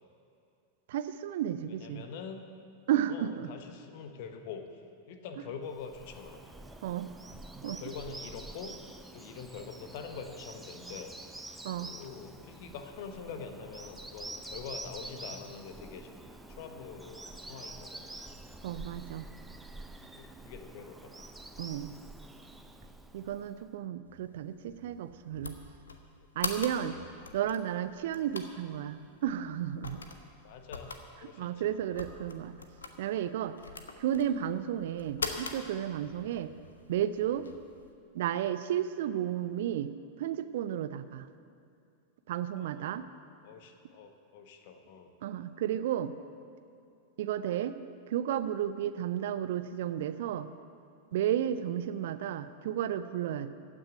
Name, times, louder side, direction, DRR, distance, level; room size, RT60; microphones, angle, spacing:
voice 1, 0.9-2.0 2.9-3.5 6.8-7.2 7.6-7.8 11.6-11.9 18.6-19.3 21.6-21.9 23.1-25.5 26.4-27.0 27.3-30.0 31.4-32.6 33.0-33.6 34.0-36.5 36.9-37.5 38.1-39.9 40.2-41.3 42.3-43.0 45.2-46.1 47.2-47.8 48.1-50.5 51.1-53.5, right 10 dB, 55° right, 12 dB, 0.5 m, -33 dB
voice 2, 1.7-2.4 3.1-6.4 7.6-8.7 9.1-11.1 11.8-16.2 16.5-18.1 20.2-21.1 21.5-21.6 26.7-27.0 30.4-31.0 31.2-31.7 42.6-43.0 43.4-45.1, left 6 dB, 50° left, 7 dB, 1.2 m, -45 dB
Bird vocalization bird call bird song, 5.7-23.7, right 2 dB, 5° right, 0.8 m, -47 dB
sound 1, 24.0-37.9, left 4 dB, 70° left, 0.9 m, -44 dB
15.5 x 6.2 x 9.1 m, 2.5 s
figure-of-eight pair, 90°, 0 cm